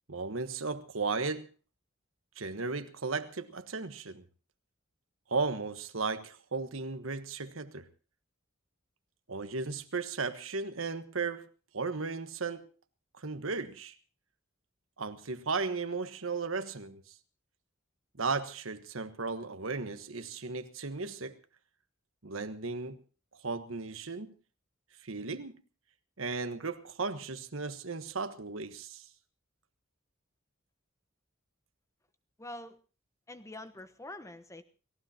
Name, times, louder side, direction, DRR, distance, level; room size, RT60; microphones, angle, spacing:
voice 1, 0.1-1.5 2.4-4.2 5.3-7.8 9.3-11.5 11.7-12.7 13.2-13.9 15.0-17.1 18.2-21.4 22.2-23.0 23.4-24.3 25.0-25.6 26.2-29.1, right 4 dB, 75° right, 1.4 m, -35 dB
voice 2, 32.4-32.8 33.3-34.6, left 1 dB, 15° left, 1.1 m, -45 dB
30.0 x 15.5 x 2.9 m
head